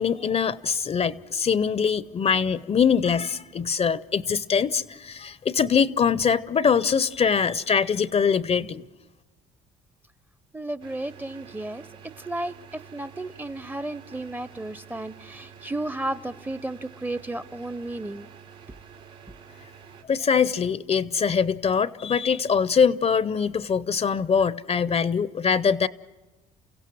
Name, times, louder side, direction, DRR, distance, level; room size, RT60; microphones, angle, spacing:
voice 1, 0.0-8.8 20.1-25.9, left 6 dB, 35° left, 0.6 m, -23 dB
voice 2, 10.5-11.9 12.3-18.3, right 2 dB, 10° right, 0.6 m, -33 dB
sound 1, 10.8-20.0, right 7 dB, 85° right, 2.7 m, -48 dB
29.0 x 16.0 x 6.2 m
supercardioid pair, 70°, 17 cm